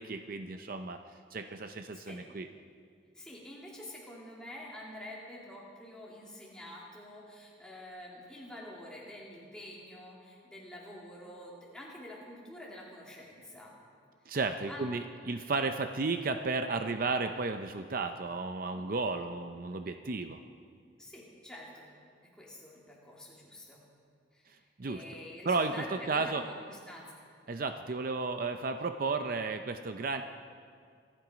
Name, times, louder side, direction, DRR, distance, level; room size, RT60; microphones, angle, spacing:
voice 1, 0.0-2.5 14.3-20.4 24.5-25.0 25.4-25.7 26.1-26.4 27.5-30.2, right 3 dB, 50° right, 7 dB, 0.6 m, -33 dB
voice 2, 3.1-13.7 14.7-14.9 21.0-21.9 22.3-23.8 24.3-27.2, left 1 dB, 5° left, -5 dB, 2.9 m, -47 dB
25.0 x 11.0 x 5.1 m, 2.2 s
head